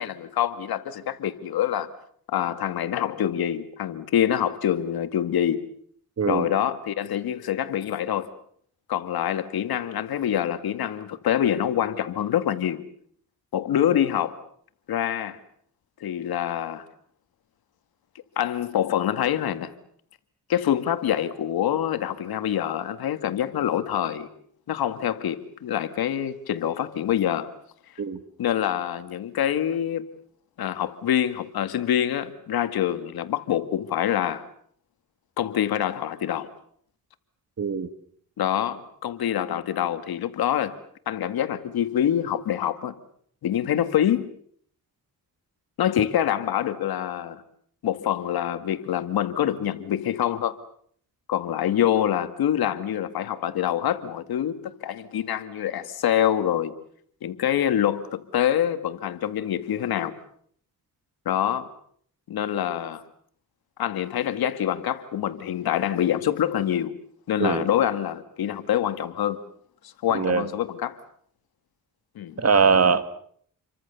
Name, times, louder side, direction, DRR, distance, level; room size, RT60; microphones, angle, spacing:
voice 1, 0.0-1.9 2.3-5.6 6.3-8.3 8.9-12.8 13.5-14.4 14.9-15.4 16.0-16.8 18.4-19.7 20.5-24.3 24.7-27.5 28.4-30.1 30.6-34.4 35.4-36.5 38.4-40.8 41.1-42.9 43.4-44.3 45.8-47.4 47.8-50.5 51.3-56.7 57.2-60.1 61.3-61.7 62.3-63.0 63.8-66.9 67.3-69.5 70.0-71.0 72.2-72.3, left 10 dB, 85° left, 2.1 m, -25 dB
voice 2, 37.6-37.9 67.4-67.6 70.1-70.5 72.4-73.0, right 5 dB, 45° right, 2.2 m, -21 dB
29.0 x 24.0 x 7.0 m
cardioid pair, 80°, 36 cm